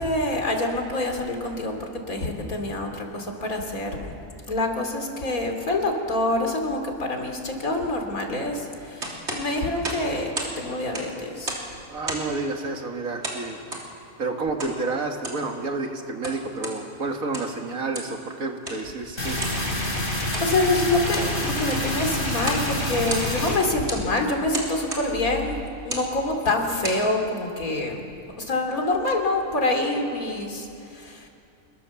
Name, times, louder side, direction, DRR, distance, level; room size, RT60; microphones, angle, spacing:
voice 1, 0.0-4.1 4.5-11.5 20.1-28.1 28.4-31.3, left 2 dB, 85° left, 3 dB, 3.4 m, -26 dB
sound 1, 9.0-10.6 10.8-11.7 12.0-12.4 13.2-13.9 14.6-14.8 15.1-15.5 16.0-16.8 17.2-17.6 17.9-18.2 18.6-18.8 19.4-19.6 20.2-20.5 20.9-21.3 21.6-21.9 22.4-22.7 23.0-23.5 23.9-24.1 24.5-25.1 25.8-26.1 26.6-27.1, right 1 dB, 50° right, 3.6 m, -33 dB
voice 2, 11.9-13.6 14.2-19.4, right 3 dB, 75° right, 4 dB, 2.2 m, -30 dB
sound 2, 19.2-23.6, left 1 dB, 40° left, 4.9 m, -27 dB
26.0 x 22.0 x 7.1 m, 2.6 s
omnidirectional pair, 1.4 m